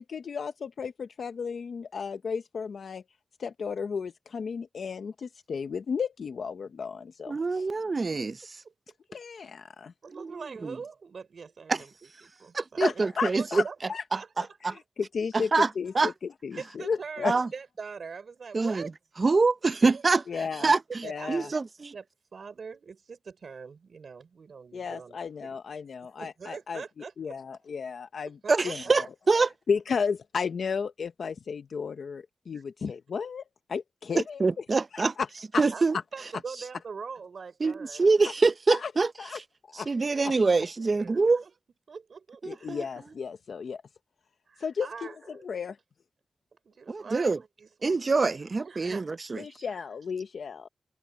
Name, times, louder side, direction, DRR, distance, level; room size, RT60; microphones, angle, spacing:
voice 1, 0.0-3.0 3.4-7.7 9.1-9.9 12.8-14.0 14.6-17.3 20.3-20.7 21.0-21.5 24.7-26.8 27.2-28.4 28.6-29.1 29.7-33.4 33.7-34.4 34.9-35.3 35.5-35.6 38.2-38.3 38.7-38.9 39.2-39.4 39.7-39.9 42.5-43.8 44.6-45.8 49.4-50.7, left 5 dB, 85° left, 0.8 m, -33 dB
voice 2, 7.3-8.5 10.1-10.7 11.7-11.8 12.5-13.6 14.1-14.2 14.6-14.7 15.3-15.7 15.9-16.1 17.2-17.5 18.5-18.9 19.2-20.8 21.3-21.9 28.5-29.5 34.2-35.1 35.6-36.0 37.6-39.1 39.9-41.4 42.4-42.8 46.9-47.4 47.8-49.4, right 3 dB, 50° right, 0.7 m, -25 dB
voice 3, 10.0-11.9 12.2-13.0 13.3-14.3 14.7-14.8 16.6-18.9 19.6-20.0 20.6-20.7 21.0-21.5 21.9-22.0 22.3-25.8 26.2-27.3 28.4-28.9 32.5-32.6 35.7-35.8 36.1-38.1 40.1-40.2 40.6-41.1 41.4-41.5 41.9-42.9 44.5-45.4 46.5-48.0 48.6-49.2 49.7-49.8, right 5 dB, 75° right, 5.1 m, -43 dB
cardioid pair, 60°, 0 cm